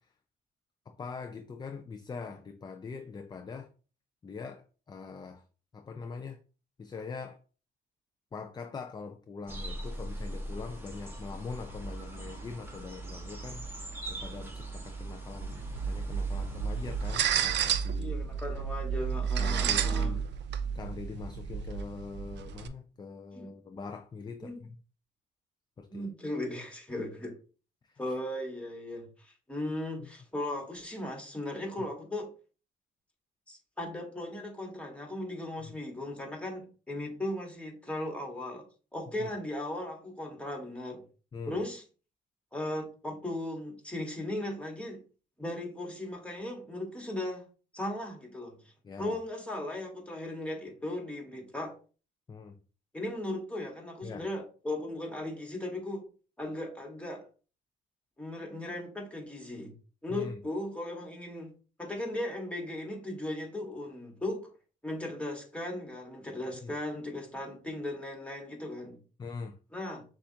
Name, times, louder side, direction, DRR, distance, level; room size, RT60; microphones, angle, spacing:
voice 1, 0.9-3.7 4.2-5.4 5.7-6.4 6.8-7.4 8.3-13.6 14.1-18.2 19.4-20.2 20.7-24.7 25.8-26.1 27.8-28.0 30.0-30.1 39.2-39.3 41.3-41.6 48.8-49.2 52.3-52.6 54.0-54.3 60.1-60.4 66.6-66.7 69.2-69.6, left 4 dB, 20° left, 0.4 m, -42 dB
sound 1, 9.5-17.2, right 2 dB, 10° right, 1.2 m, -40 dB
sound 2, 15.4-22.7, right 7 dB, 60° right, 0.5 m, -31 dB
voice 2, 18.0-20.2 23.3-23.5 24.4-24.6 25.9-27.3 28.0-32.3 33.5-38.7 38.9-41.0 41.5-41.8 42.5-45.0 45.4-47.4 47.7-48.7 49.0-51.7 52.9-56.0 56.4-57.3 58.2-59.7 60.0-61.5 61.8-64.5 64.8-69.0 69.7-70.0, left 1 dB, 5° left, 1.5 m, -37 dB
6.8 x 2.4 x 2.8 m
cardioid pair, 90°, 20 cm